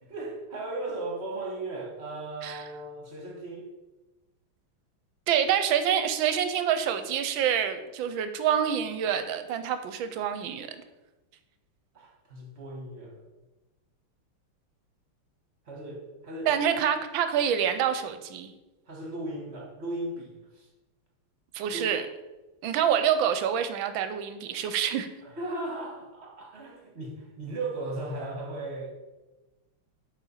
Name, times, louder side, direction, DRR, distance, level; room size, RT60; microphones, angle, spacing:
voice 1, 0.0-3.7 11.9-13.2 15.7-16.5 18.9-20.7 21.7-21.9 25.2-28.9, right 2 dB, 35° right, 0 dB, 1.3 m, -37 dB
voice 2, 5.3-10.7 16.5-18.5 21.5-22.1 22.6-25.1, right 9 dB, 75° right, 9 dB, 1.3 m, -27 dB
8.1 x 4.2 x 5.6 m, 1.1 s
omnidirectional pair, 2.4 m